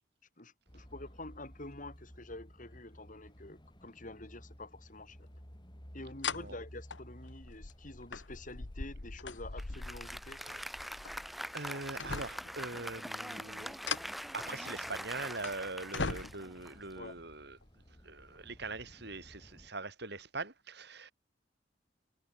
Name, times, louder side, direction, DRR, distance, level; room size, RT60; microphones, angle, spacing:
voice 1, 0.4-5.2 5.9-10.4 16.0-16.2 17.0-17.2, left 2 dB, 45° left, 5.4 m, -48 dB
sound 1, 0.7-19.7, equal, 25° left, 6.9 m, -56 dB
sound 2, 5.2-5.3 6.2-6.4 6.9-11.4 11.7-12.6 13.6-14.8 15.4-15.5 15.9-16.6 17.6-17.7, left 4 dB, 90° left, 1.5 m, -40 dB
voice 2, 6.2-6.6 11.5-13.8 14.3-17.6 18.0-21.1, right 3 dB, 65° right, 6.9 m, -42 dB
Applause, 9.6-17.2, equal, ahead, 4.2 m, -43 dB
head